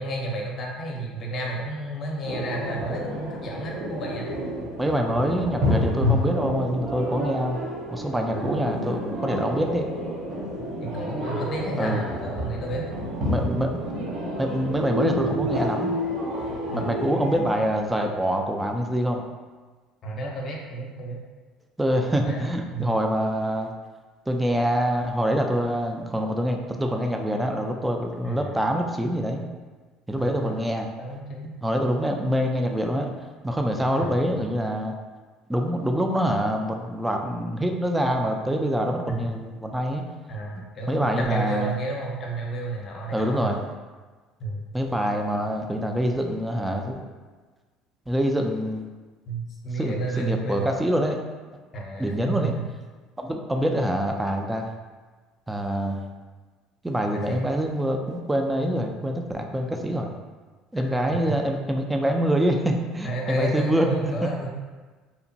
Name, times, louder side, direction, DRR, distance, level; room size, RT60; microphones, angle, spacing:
voice 1, 0.0-4.3 8.3-8.6 10.8-12.8 15.2-15.5 16.7-17.4 20.0-21.2 22.2-22.5 22.7-23.0 28.2-28.6 30.2-30.6 31.0-31.5 33.9-34.5 39.1-39.2 40.3-43.5 44.4-44.6 49.3-50.7 51.7-52.7 57.1-57.4 60.7-60.8 61.3-61.4 63.0-64.5, right 2 dB, 45° left, -1 dB, 0.7 m, -31 dB
sound 1, 2.2-17.5, left 1 dB, 60° right, 0.6 m, -29 dB
voice 2, 4.8-7.6 7.9-9.9 11.8-12.0 13.2-13.8 14.4-16.0 16.7-19.2 21.8-23.7 24.3-29.4 30.1-30.9 31.6-33.1 33.4-34.9 35.5-40.0 40.6-41.7 43.1-43.6 44.7-47.0 48.1-48.9 49.8-51.2 52.0-52.5 53.2-54.7 55.5-56.0 56.8-60.1 60.7-64.1, equal, 10° right, 3 dB, 0.4 m, -25 dB
2.9 x 2.1 x 2.7 m, 1.3 s
hypercardioid pair, 70°, 0 cm